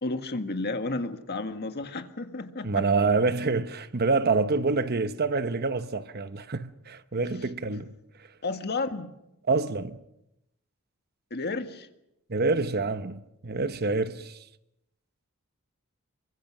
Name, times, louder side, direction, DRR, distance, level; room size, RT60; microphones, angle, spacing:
voice 1, 0.0-2.9 8.4-9.1 11.3-11.9, left 3 dB, 50° left, 1.7 m, -32 dB
voice 2, 2.6-7.9 9.5-10.0 12.3-14.4, right 3 dB, 45° right, 1.0 m, -27 dB
27.5 x 24.0 x 6.2 m
head